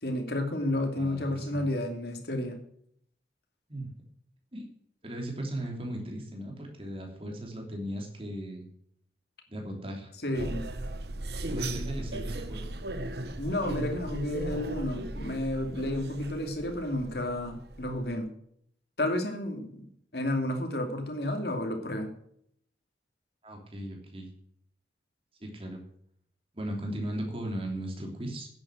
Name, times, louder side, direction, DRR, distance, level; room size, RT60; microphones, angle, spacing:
voice 1, 0.0-2.6 10.2-10.7 13.4-18.3 19.0-19.9 20.1-22.1, left 1 dB, 65° left, 4 dB, 2.6 m, -31 dB
voice 2, 0.9-1.7 3.7-3.9 4.5-4.7 5.0-8.7 9.5-10.1 11.5-12.7 23.4-24.3 25.4-25.8 26.5-28.5, right 1 dB, 30° right, 1 dB, 3.2 m, -37 dB
sound 1, 10.3-18.1, right 1 dB, 65° right, 1.2 m, -37 dB
10.5 x 8.9 x 7.7 m, 0.67 s
head